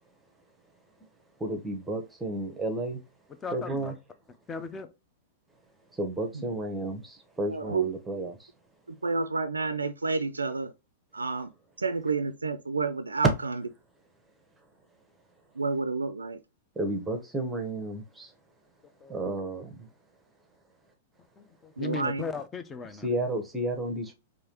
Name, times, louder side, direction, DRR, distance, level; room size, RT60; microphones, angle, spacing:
voice 1, 1.4-3.0 3.5-3.9 5.9-8.5 16.7-18.3 19.1-19.9 22.9-24.1, right 1 dB, 10° right, 0.9 m, -32 dB
voice 2, 3.4-3.9 4.5-4.9 19.0-19.2 21.4-23.1, left 5 dB, 20° left, 0.6 m, -37 dB
voice 3, 7.4-7.9 8.9-10.7 11.1-11.5 11.8-13.3 15.6-16.4 21.8-22.2, right 4 dB, 85° right, 0.3 m, -29 dB
4.7 x 2.6 x 2.8 m
figure-of-eight pair, 105°, 0 cm